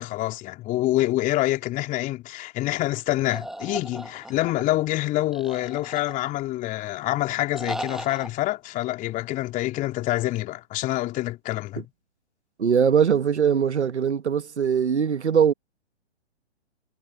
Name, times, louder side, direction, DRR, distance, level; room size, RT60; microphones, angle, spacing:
voice 1, 0.0-11.9, left 16 dB, 25° left, 3.6 m, -26 dB
sound 1, 3.3-4.6 5.3-6.5 7.5-8.3, right 1 dB, ahead, 2.1 m, -36 dB
voice 2, 12.6-15.5, right 7 dB, 75° right, 1.5 m, -21 dB
figure-of-eight pair, 130°, 34 cm